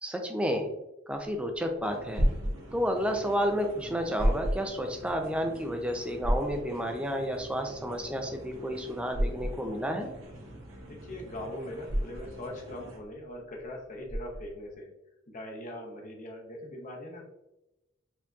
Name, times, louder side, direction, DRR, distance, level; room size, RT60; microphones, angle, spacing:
voice 1, 0.0-0.7 1.1-2.3 2.7-10.1, equal, 5° right, 4 dB, 0.4 m, -31 dB
sound 1, 1.6-14.7, equal, 35° right, 1.1 m, -32 dB
sound 2, 1.8-13.0, right 1 dB, 80° right, 1.0 m, -48 dB
voice 2, 10.9-14.9 15.3-17.3, left 1 dB, 40° left, 1 dB, 0.7 m, -41 dB
4.4 x 2.7 x 2.4 m, 0.93 s
head